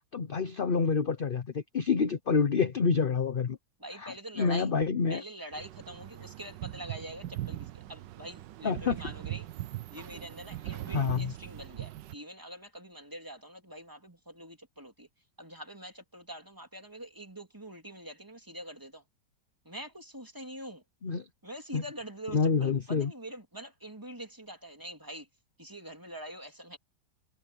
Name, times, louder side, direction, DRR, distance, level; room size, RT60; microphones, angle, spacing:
voice 1, 0.1-3.6 3.9-5.2 8.6-9.1 10.9-11.3 21.0-21.2 21.7-21.8 22.3-23.1, left 5 dB, 40° left, 0.8 m, -28 dB
voice 2, 3.8-4.7 5.1-9.5 9.9-15.1 15.4-19.0 19.6-20.8 21.4-25.3 25.6-26.8, right 1 dB, 10° right, 3.2 m, -44 dB
sound 1, 5.5-12.2, right 15 dB, 80° right, 1.4 m, -40 dB
omnidirectional pair, 1.9 m